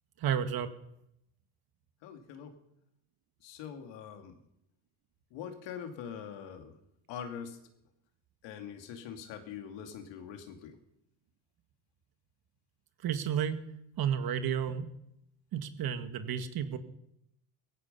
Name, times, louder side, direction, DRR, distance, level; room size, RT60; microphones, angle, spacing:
voice 1, 0.2-0.7 13.0-13.6 14.0-14.9 15.5-16.8, right 8 dB, 55° right, 9 dB, 1.8 m, -31 dB
voice 2, 2.0-2.5 3.4-4.4 5.3-6.8 7.1-7.6 8.4-10.8, left 8 dB, 75° left, 6 dB, 2.6 m, -43 dB
17.5 x 15.0 x 5.6 m, 0.81 s
cardioid pair, 105°, 44 cm